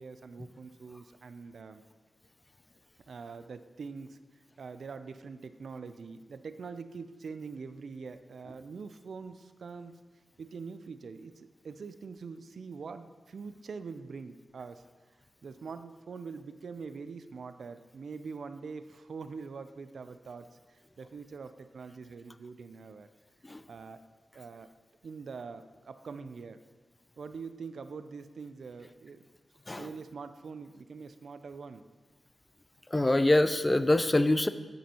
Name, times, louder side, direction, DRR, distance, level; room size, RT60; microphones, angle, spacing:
voice 1, 0.0-1.8 3.1-4.2 4.6-10.0 10.4-14.8 15.4-23.1 23.7-24.0 24.3-24.7 25.0-26.6 27.2-29.3 29.7-31.8, right 5 dB, 75° right, 11 dB, 0.4 m, -44 dB
voice 2, 32.9-34.5, left 1 dB, 20° left, 12 dB, 0.3 m, -24 dB
9.2 x 6.8 x 2.9 m, 1.3 s
cardioid pair, 60°, 0 cm